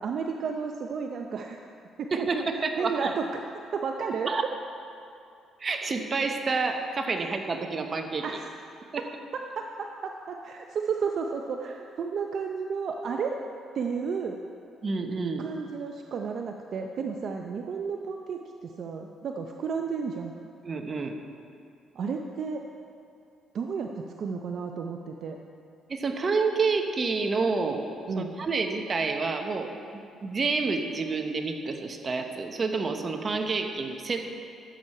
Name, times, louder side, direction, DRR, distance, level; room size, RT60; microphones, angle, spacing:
voice 1, 0.0-1.6 2.0-2.5 2.8-3.4 3.7-4.5 8.2-8.5 9.0-9.1 9.3-13.4 13.7-14.4 15.4-20.3 21.9-22.7 23.5-25.4 28.1-28.3, right 5 dB, 60° right, 3 dB, 0.6 m, -32 dB
voice 2, 2.1-3.1 4.3-4.4 5.6-8.3 8.9-9.0 14.8-15.5 20.6-21.1 25.9-27.9 28.2-29.7 30.2-34.2, right 4 dB, 40° right, 5 dB, 1.1 m, -28 dB
14.0 x 8.2 x 4.4 m, 2.5 s
cardioid pair, 80°, 0 cm